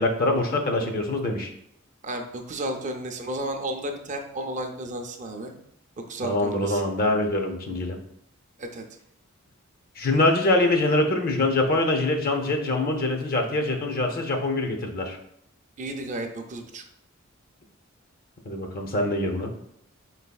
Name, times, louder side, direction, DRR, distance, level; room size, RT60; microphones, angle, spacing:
voice 1, 0.0-1.5 6.2-8.0 10.0-15.2 18.4-19.5, left 2 dB, 45° left, 4 dB, 0.6 m, -24 dB
voice 2, 2.0-5.5 6.1-6.8 8.6-8.8 15.8-16.8, right 1 dB, 35° right, 4 dB, 0.5 m, -33 dB
4.8 x 4.0 x 2.3 m, 0.75 s
head